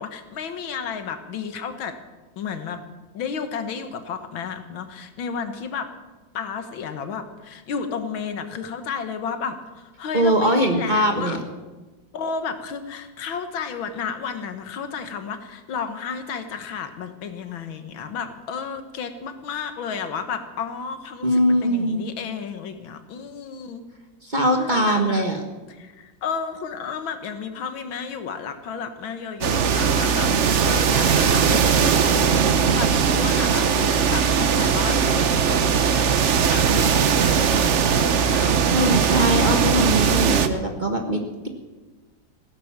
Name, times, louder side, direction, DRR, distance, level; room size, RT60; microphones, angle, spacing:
voice 1, 0.0-2.0 2.4-2.8 3.1-5.9 6.3-11.4 12.1-23.8 24.6-25.2 25.7-30.3 30.7-39.4, left 6 dB, 85° left, 9 dB, 2.0 m, -32 dB
voice 2, 10.1-11.4 21.2-22.1 24.2-25.4 38.7-41.5, equal, 25° right, 4 dB, 1.4 m, -21 dB
sound 1, 29.4-40.5, right 6 dB, 55° right, 0.9 m, -19 dB
17.0 x 10.5 x 7.2 m, 1.2 s
omnidirectional pair, 2.1 m